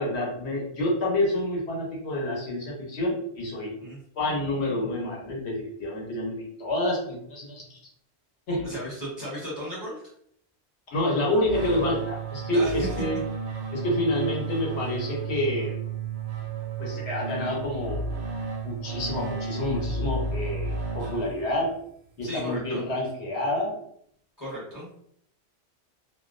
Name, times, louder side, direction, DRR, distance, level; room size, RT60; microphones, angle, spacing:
voice 1, 0.0-3.7 4.2-7.8 8.5-8.7 10.9-13.2 13.7-15.8 16.8-18.0 18.6-21.7 22.2-23.7, left 1 dB, 80° left, -3 dB, 1.1 m, -28 dB
voice 2, 8.6-10.0 12.5-12.9 22.2-22.9 24.4-24.9, equal, 20° left, -7 dB, 0.8 m, -35 dB
sound 1, 11.4-21.7, right 4 dB, 55° right, 0.6 m, -32 dB
2.4 x 2.0 x 2.4 m, 0.67 s
omnidirectional pair, 1.1 m